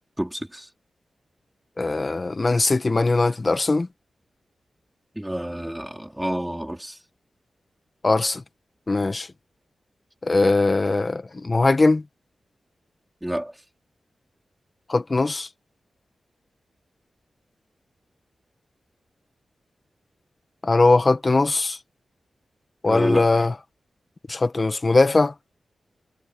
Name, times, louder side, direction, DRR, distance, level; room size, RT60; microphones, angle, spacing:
voice 1, 0.2-0.7 5.1-7.0 13.2-13.6 22.9-23.5, right 1 dB, 5° right, 3.9 m, -29 dB
voice 2, 1.8-3.9 8.0-8.4 8.9-9.3 10.2-12.0 14.9-15.5 20.6-21.8 22.8-23.5 24.3-25.3, left 3 dB, 35° left, 1.6 m, -20 dB
wide cardioid pair, 105°, 0 cm